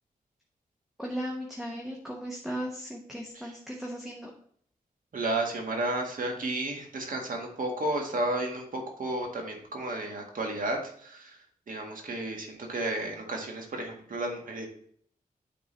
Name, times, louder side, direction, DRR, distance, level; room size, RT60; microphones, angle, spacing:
voice 1, 1.0-4.3, equal, ahead, -1 dB, 1.1 m, -36 dB
voice 2, 5.1-11.4 11.7-14.7, right 2 dB, 65° right, 1 dB, 1.8 m, -32 dB
9.5 x 3.9 x 4.0 m, 0.62 s
wide cardioid pair, 130°, 15 cm